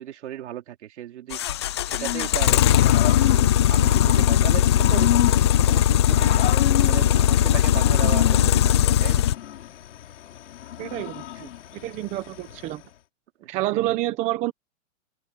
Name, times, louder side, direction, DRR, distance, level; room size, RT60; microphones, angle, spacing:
voice 1, 0.0-1.4 1.9-2.6 3.1-5.1 5.4-6.5 6.8-9.2 11.4-11.5 13.4-13.8, right 12 dB, 60° right, 3.6 m, -36 dB
sound 1, 1.3-9.3, left 11 dB, 20° left, 0.4 m, -19 dB
Growling / Cricket, 1.9-12.9, left 12 dB, 65° left, 4.8 m, -32 dB
voice 2, 10.8-11.2 11.8-12.8 13.5-14.5, right 16 dB, 20° right, 0.9 m, -27 dB
hypercardioid pair, 165°, 39 cm